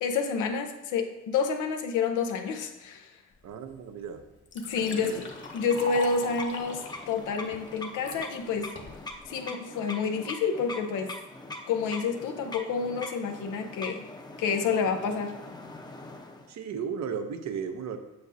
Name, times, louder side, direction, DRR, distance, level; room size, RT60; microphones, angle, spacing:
voice 1, 0.0-3.1 4.6-8.7 9.3-11.1 11.7-14.1 14.4-15.4, left 5 dB, 85° left, 5 dB, 0.8 m, -29 dB
voice 2, 3.4-4.2 4.9-5.2 16.5-18.0, right 6 dB, 65° right, 8 dB, 0.8 m, -35 dB
Liquid, 3.7-3.8 4.2-8.2 8.8-9.2, equal, 40° left, 1.2 m, -40 dB
sound 1, 4.7-16.5, left 2 dB, 15° left, 0.7 m, -43 dB
7.9 x 6.2 x 2.7 m, 1.0 s
cardioid pair, 90°, 30 cm